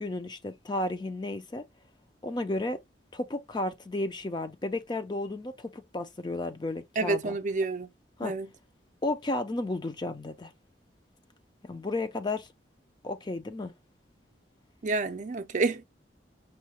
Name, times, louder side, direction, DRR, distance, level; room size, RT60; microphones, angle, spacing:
voice 1, 0.0-1.6 2.2-2.8 3.1-7.4 8.2-8.4 9.0-10.5 11.6-12.5 13.0-13.7, left 2 dB, 25° left, 0.4 m, -33 dB
voice 2, 7.0-7.9 8.2-8.5 14.8-15.8, right 3 dB, 45° right, 0.5 m, -29 dB
5.5 x 2.1 x 2.9 m
head